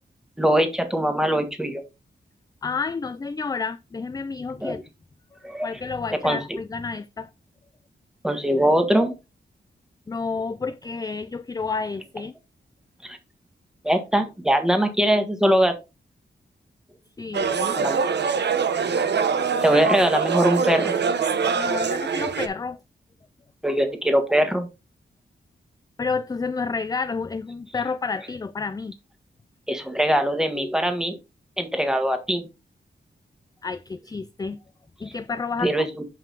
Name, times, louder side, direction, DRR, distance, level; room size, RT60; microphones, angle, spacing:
voice 1, 0.4-1.8 4.6-4.8 5.4-5.7 6.2-6.6 8.2-9.1 13.0-13.2 13.8-15.7 17.7-18.1 19.6-20.9 23.6-24.7 29.7-31.2 31.6-32.5 35.6-36.0, equal, 5° right, 1.4 m, -22 dB
voice 2, 2.6-4.8 5.6-7.3 10.1-12.3 17.2-17.9 21.5-22.8 26.0-28.9 33.6-34.6 35.0-35.7, left 4 dB, 20° left, 0.4 m, -30 dB
sound 1, 17.3-22.5, right 6 dB, 70° right, 0.9 m, -24 dB
7.3 x 5.4 x 3.9 m
wide cardioid pair, 155°, 19 cm